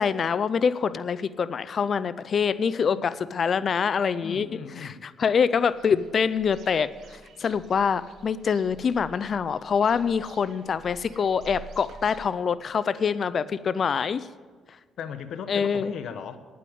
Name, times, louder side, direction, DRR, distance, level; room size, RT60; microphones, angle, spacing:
voice 1, 0.0-4.5 4.8-6.9 7.4-14.3 15.5-15.9, left 6 dB, 50° left, 16 dB, 0.4 m, -25 dB
voice 2, 4.2-5.0 15.0-16.4, left 7 dB, 70° left, 11 dB, 0.9 m, -37 dB
sound 1, 5.6-12.2, right 3 dB, 70° right, 1.3 m, -49 dB
10.0 x 8.4 x 8.5 m, 1.5 s
cardioid pair, 90°, 0 cm